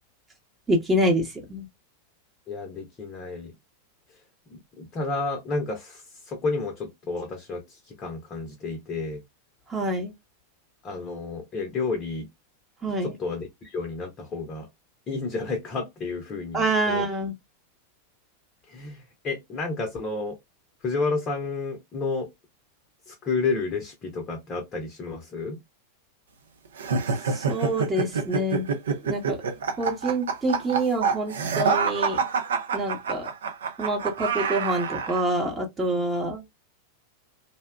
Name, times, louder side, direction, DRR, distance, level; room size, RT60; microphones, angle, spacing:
voice 1, 0.7-1.7 9.7-10.1 12.8-13.1 16.5-17.3 27.3-28.7 29.0-29.4 29.8-32.2 32.7-33.3 33.8-36.4, right 1 dB, 15° right, 0.8 m, -26 dB
voice 2, 2.5-3.5 4.5-9.2 10.8-12.3 13.0-14.7 15.1-17.1 18.7-20.4 20.8-22.3 23.1-25.6, left 3 dB, 30° left, 0.6 m, -31 dB
sound 1, 26.8-35.2, right 5 dB, 65° right, 0.5 m, -27 dB
2.7 x 2.1 x 2.3 m
figure-of-eight pair, 90°, 0 cm